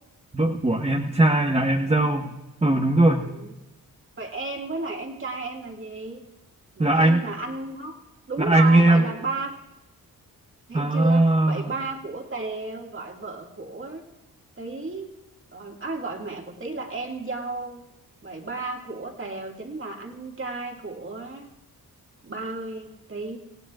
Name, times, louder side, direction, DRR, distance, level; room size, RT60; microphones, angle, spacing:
voice 1, 0.3-2.3 2.6-3.3 6.8-7.2 8.4-9.0 10.7-11.7, right 2 dB, 15° right, -1 dB, 1.1 m, -19 dB
voice 2, 3.2-3.5 4.2-6.2 6.8-7.9 8.3-9.6 10.7-14.0 14.6-15.1 15.5-17.8 18.2-21.5 22.2-23.4, right 3 dB, 35° right, 1 dB, 2.1 m, -33 dB
26.5 x 17.0 x 2.5 m, 0.97 s
cardioid pair, 80°, 37 cm